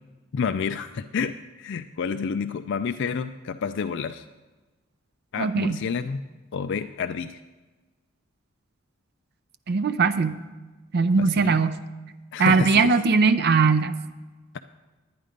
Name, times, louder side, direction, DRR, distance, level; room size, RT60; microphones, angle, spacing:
voice 1, 0.3-4.2 5.3-6.2 6.5-7.4 11.2-11.6 12.3-12.9 14.5-14.6, left 6 dB, 60° left, 9 dB, 0.4 m, -29 dB
voice 2, 5.4-5.8 9.7-10.5 10.9-11.8 12.4-14.0, right 4 dB, 50° right, 11 dB, 0.5 m, -20 dB
11.0 x 9.4 x 5.1 m, 1.2 s
head